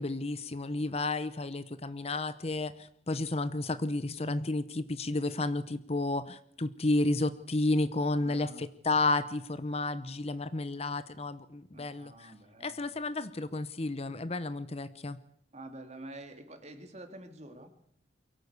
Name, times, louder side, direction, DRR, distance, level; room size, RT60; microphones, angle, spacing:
voice 1, 0.0-12.3 12.6-15.2, left 2 dB, 35° left, 14 dB, 0.9 m, -32 dB
voice 2, 8.2-8.7 11.7-13.0 15.5-17.7, right 1 dB, 40° right, 7 dB, 2.8 m, -48 dB
23.5 x 17.0 x 8.3 m, 0.70 s
head